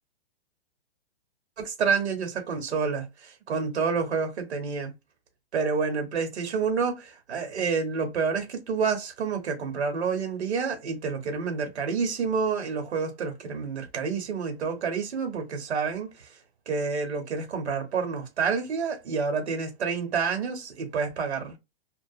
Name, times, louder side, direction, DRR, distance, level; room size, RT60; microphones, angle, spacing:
voice 1, 1.6-4.9 5.5-16.3 16.7-21.6, right 5 dB, 85° right, 1.1 m, -28 dB
2.8 x 2.3 x 2.4 m
hypercardioid pair, 170°, 32 cm